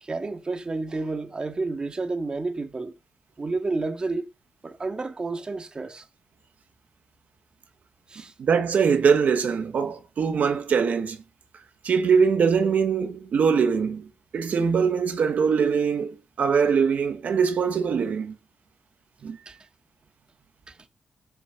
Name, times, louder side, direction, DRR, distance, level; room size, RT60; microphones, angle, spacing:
voice 1, 0.0-2.9 3.4-4.2 4.6-6.0 8.1-8.3 19.5-19.6 20.7-20.8, right 3 dB, 30° right, 1.8 m, -30 dB
voice 2, 8.4-11.2 11.8-14.1 14.3-18.3 19.2-19.4, right 6 dB, 70° right, 1.2 m, -22 dB
12.5 x 6.3 x 6.9 m
cardioid pair, 95°, 3 cm